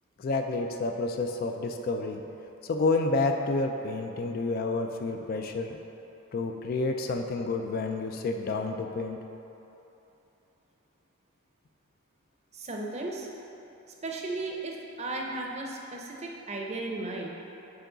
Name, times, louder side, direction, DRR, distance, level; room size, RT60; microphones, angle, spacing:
voice 1, 0.2-2.2 2.6-5.8 6.3-9.2, left 3 dB, 45° left, 4 dB, 0.3 m, -29 dB
voice 2, 12.5-13.3 14.0-17.3, right 2 dB, 30° right, -1 dB, 0.6 m, -35 dB
7.0 x 4.7 x 3.8 m, 3.0 s
head